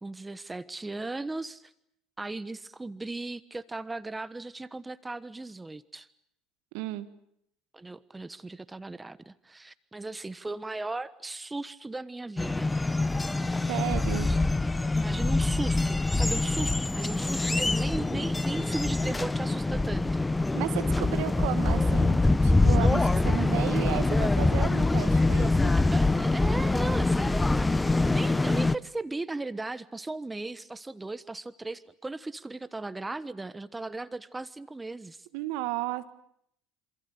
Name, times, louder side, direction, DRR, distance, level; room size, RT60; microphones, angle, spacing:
voice 1, 0.0-1.7 2.2-6.1 7.7-12.7 14.1-14.4 14.9-20.3 25.6-27.6 28.1-35.3, right 2 dB, 15° right, 16 dB, 1.2 m, -37 dB
voice 2, 6.7-7.1 13.4-14.3 20.5-25.7 35.3-36.0, right 16 dB, 70° right, 12 dB, 1.8 m, -34 dB
sound 1, 12.4-28.7, left 2 dB, 15° left, 1.1 m, -25 dB
27.5 x 27.0 x 6.8 m, 0.75 s
hypercardioid pair, 70°, 0 cm